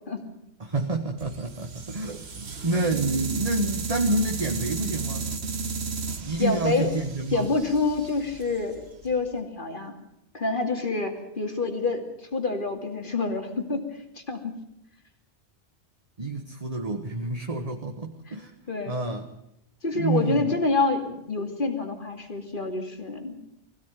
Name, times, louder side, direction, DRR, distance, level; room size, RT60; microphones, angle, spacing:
voice 1, 0.6-5.3 6.2-7.5 16.2-18.5 18.9-19.3 19.9-20.6, right 2 dB, 35° right, 3 dB, 1.5 m, -28 dB
sound 1, 1.2-9.3, right 4 dB, 70° right, 1.7 m, -34 dB
voice 2, 6.4-6.9 7.3-9.9 10.3-12.0 12.3-13.9 14.2-14.6 18.3-18.4 18.7-19.0 19.8-23.4, left 3 dB, 50° left, 4 dB, 2.8 m, -27 dB
21.0 x 16.5 x 9.2 m, 0.80 s
omnidirectional pair, 1.2 m